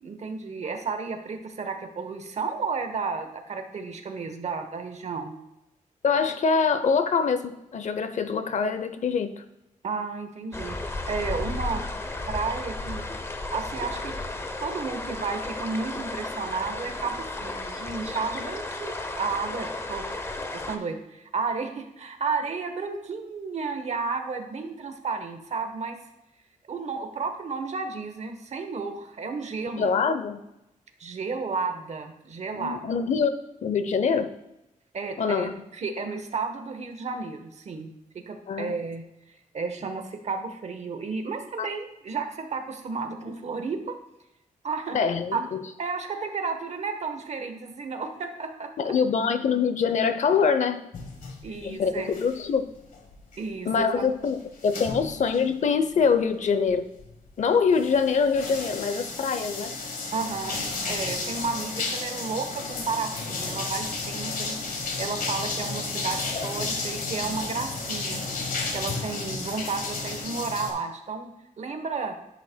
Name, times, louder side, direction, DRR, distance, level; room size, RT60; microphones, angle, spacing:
voice 1, 0.0-5.3 9.8-10.8 11.1-11.8 12.3-13.0 13.5-14.1 14.6-20.0 20.5-26.0 26.7-29.9 31.0-32.8 34.9-37.9 38.1-39.0 39.5-44.0 44.6-45.0 45.3-45.4 45.8-48.9 51.4-52.1 53.4-54.0 60.1-64.6 65.0-68.2 68.7-72.2, right 4 dB, 55° right, 7 dB, 1.0 m, -32 dB
voice 2, 6.0-9.4 29.8-30.4 32.5-33.3 33.6-34.3 35.2-35.5 38.5-38.7 41.6-41.7 44.9-45.5 48.8-50.9 51.6-52.6 53.6-56.9 57.4-59.7, left 5 dB, 60° left, 11 dB, 0.6 m, -24 dB
sound 1, 10.5-20.8, left 2 dB, 20° left, 0.7 m, -34 dB
sound 2, 50.9-52.6 52.9-55.5 55.9-56.2 56.7-57.3 57.7-70.7, left 3 dB, 90° left, 1.5 m, -33 dB
10.5 x 8.5 x 2.2 m, 0.89 s
wide cardioid pair, 155°, 14 cm